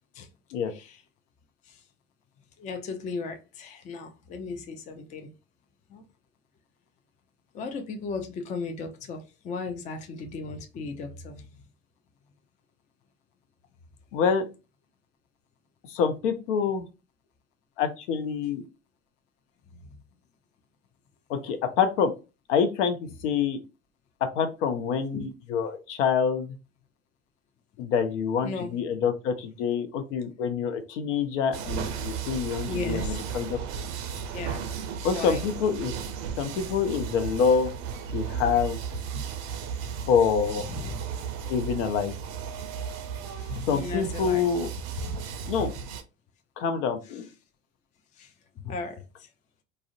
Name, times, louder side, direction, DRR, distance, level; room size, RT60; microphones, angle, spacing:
voice 1, 2.6-5.3 5.9-6.0 7.5-11.5 19.7-20.0 25.1-25.3 28.4-28.7 32.7-33.3 34.3-34.6 35.1-35.4 39.1-39.2 40.6-41.0 43.3-44.5 45.0-45.2 48.2-49.3, left 4 dB, 20° left, 0.4 m, -36 dB
voice 2, 14.1-14.5 15.8-16.9 17.8-18.6 21.3-22.1 22.5-23.0 23.2-23.6 24.3-26.6 27.8-33.6 35.0-35.9 36.4-37.7 38.1-38.8 40.1-40.6 41.5-42.1 43.7-44.7 45.5-45.7 46.6-47.2, left 6 dB, 70° left, 0.6 m, -26 dB
sound 1, 31.5-46.0, right 7 dB, 45° right, 0.5 m, -35 dB
2.4 x 2.0 x 2.5 m
hypercardioid pair, 80°, 39 cm